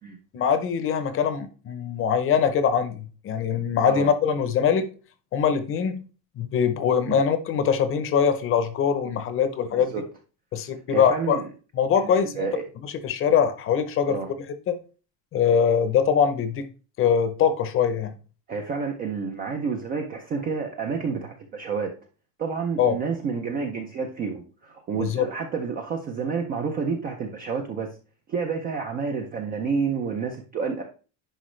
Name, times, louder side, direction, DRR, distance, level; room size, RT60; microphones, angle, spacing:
voice 1, 0.3-4.9 5.3-6.0 6.4-9.9 10.5-11.4 11.7-12.5 12.8-14.2 14.7-14.8 15.3-16.7 17.0-18.1 22.8-23.0 25.0-25.3, left 7 dB, 25° left, 11 dB, 0.7 m, -22 dB
voice 2, 9.7-10.0 10.9-11.5 11.9-12.6 14.1-14.3 18.5-21.9 22.4-28.0 28.3-30.8, right 5 dB, 20° right, 3 dB, 0.3 m, -29 dB
10.0 x 5.1 x 3.1 m, 0.36 s
cardioid pair, 175°, 48 cm